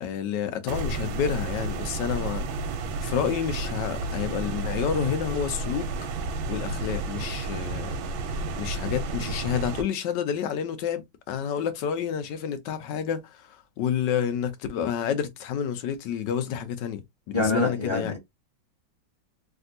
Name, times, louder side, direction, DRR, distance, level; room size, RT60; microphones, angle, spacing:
voice 1, 0.0-2.7 3.0-5.9 6.5-18.1, left 8 dB, 70° left, 1.2 m, -29 dB
sound 1, 0.7-9.8, right 3 dB, 90° right, 1.4 m, -31 dB
voice 2, 17.3-18.2, left 2 dB, 20° left, 0.8 m, -26 dB
3.4 x 2.5 x 2.6 m
omnidirectional pair, 2.1 m